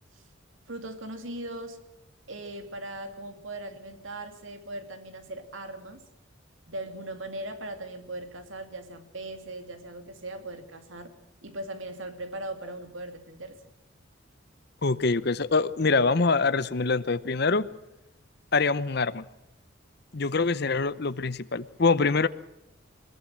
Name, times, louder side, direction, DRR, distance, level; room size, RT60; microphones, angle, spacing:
voice 1, 0.7-1.8 2.3-6.0 6.7-11.1 11.4-13.6, right 1 dB, 80° right, 2.5 m, -39 dB
voice 2, 14.8-17.7 18.5-19.2 20.1-22.3, left 4 dB, 55° left, 0.8 m, -24 dB
22.0 x 21.0 x 7.5 m
head